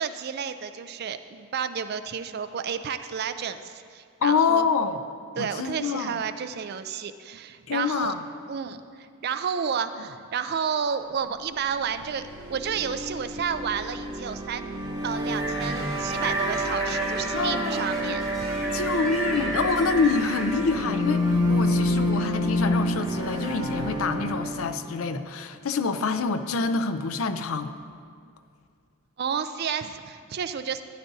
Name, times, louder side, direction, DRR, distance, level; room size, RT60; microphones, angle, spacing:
voice 1, 0.0-4.7 5.4-8.1 8.5-14.7 15.0-18.7 29.2-30.8, right 7 dB, 45° right, 10 dB, 0.4 m, -31 dB
voice 2, 4.2-5.0 5.4-6.1 7.7-8.2 17.3-18.2 18.7-27.7, left 4 dB, 70° left, 9 dB, 0.5 m, -26 dB
sound 1, 11.8-24.7, equal, 15° right, 2.2 m, -28 dB
sound 2, 15.4-20.4, right 1 dB, ahead, 1.9 m, -33 dB
13.0 x 10.5 x 2.7 m, 2.3 s
head